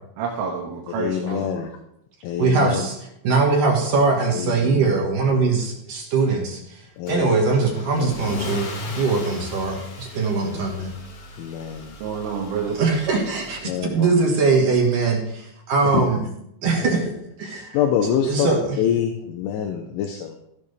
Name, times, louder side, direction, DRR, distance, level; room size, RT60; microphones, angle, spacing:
voice 1, 0.2-1.5 12.0-12.8, right 6 dB, 75° right, -1 dB, 4.1 m, -28 dB
voice 2, 1.0-1.7 2.2-2.9 4.3-4.9 5.3-5.5 7.0-7.4 8.0-8.1 10.4-10.9 11.4-12.0 13.6-14.1 15.8-16.0 16.8-16.9 17.5-18.5 18.8-20.4, left 9 dB, 80° left, 4 dB, 3.3 m, -26 dB
voice 3, 2.4-3.0 3.2-10.9 12.8-16.2 16.6-17.1 17.4-17.8 18.2-18.8, right 4 dB, 60° right, 0 dB, 2.4 m, -21 dB
Car / Engine starting / Accelerating revving vroom, 7.1-14.2, left 3 dB, 55° left, 1.6 m, -37 dB
16.0 x 11.0 x 3.4 m, 0.78 s
omnidirectional pair, 5.9 m